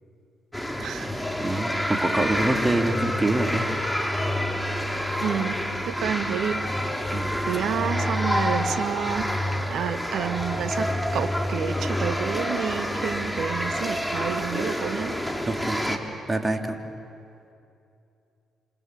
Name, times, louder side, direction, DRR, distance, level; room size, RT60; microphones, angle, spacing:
sound 1, 0.5-16.0, left 1 dB, 5° left, 3.3 m, -28 dB
voice 1, 0.8-1.1 5.2-5.6 5.8-6.6 7.5-9.3 9.7-15.1, right 8 dB, 65° right, 9 dB, 1.6 m, -29 dB
voice 2, 1.4-3.7 7.1-7.3 15.4-16.0 16.3-16.8, right 2 dB, 25° right, 4 dB, 2.9 m, -26 dB
27.5 x 27.0 x 7.8 m, 2.6 s
hypercardioid pair, 40°, 0 cm